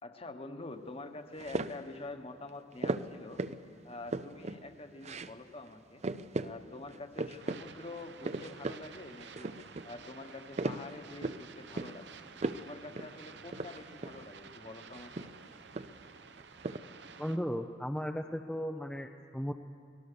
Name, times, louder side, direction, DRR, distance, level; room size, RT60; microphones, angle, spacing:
voice 1, 0.0-3.4 3.8-6.0 6.4-9.5 9.8-12.2 12.6-15.3, left 2 dB, 35° left, 7 dB, 1.3 m, -46 dB
sound 1, 1.4-1.9 2.8-3.6 3.9-4.6 5.0-5.4 5.7-5.8 6.0-6.5 6.9-7.6 7.9-8.8 9.2-9.9 10.3-11.4 11.8-12.0 12.4-12.7 12.9-13.1 13.5-14.3 14.9-16.1 16.4-16.8, right 2 dB, 40° right, 0.6 m, -37 dB
sound 2, 7.4-17.4, right 5 dB, 70° right, 0.9 m, -52 dB
voice 2, 17.2-19.5, equal, 5° left, 4 dB, 0.6 m, -36 dB
24.0 x 19.0 x 6.9 m, 2.2 s
head